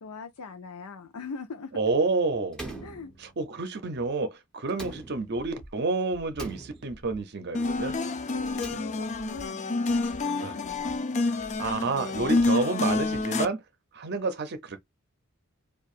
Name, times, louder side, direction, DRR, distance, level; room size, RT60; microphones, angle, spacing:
voice 1, 0.0-1.7 2.8-3.1 8.3-10.9, left 4 dB, 85° left, 0.6 m, -41 dB
voice 2, 1.7-2.6 3.2-7.9 10.4-10.6 11.3-13.6 13.9-14.8, right 3 dB, 50° right, 0.6 m, -29 dB
Slam, 2.5-3.7 4.7-5.6 6.4-7.3 8.4-9.3, right 2 dB, 5° left, 0.9 m, -43 dB
Breathing, 5.3-5.7 6.1-6.5 6.8-7.2 7.6-8.0 8.4-8.7 9.1-9.5 9.9-10.2 10.6-11.0 11.4-11.7 12.1-12.5 12.9-13.2, right 1 dB, 55° left, 1.8 m, -49 dB
sound 1, 7.5-13.5, left 3 dB, 30° left, 0.4 m, -28 dB
4.6 x 2.4 x 2.4 m
head